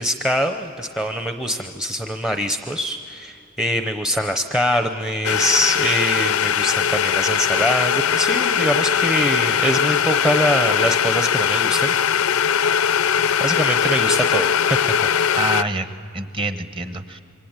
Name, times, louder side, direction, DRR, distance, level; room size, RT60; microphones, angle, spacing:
voice 1, 0.0-11.9 12.5-12.9 13.4-15.1, equal, 5° right, 6 dB, 0.7 m, -23 dB
sound 1, 5.2-15.6, left 8 dB, 80° left, 0.5 m, -20 dB
voice 2, 15.3-17.2, right 1 dB, 25° right, 9 dB, 1.1 m, -26 dB
27.5 x 24.0 x 8.9 m, 2.5 s
head